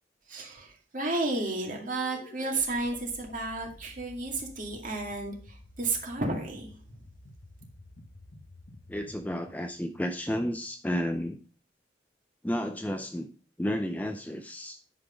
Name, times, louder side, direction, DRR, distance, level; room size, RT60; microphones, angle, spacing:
voice 1, 0.3-7.0, right 2 dB, 45° right, 2.2 m, -32 dB
sound 1, 1.4-10.7, left 1 dB, 65° left, 0.9 m, -52 dB
voice 2, 8.9-11.4 12.4-13.3 13.6-14.8, equal, 10° left, 0.5 m, -32 dB
10.0 x 5.9 x 5.1 m
head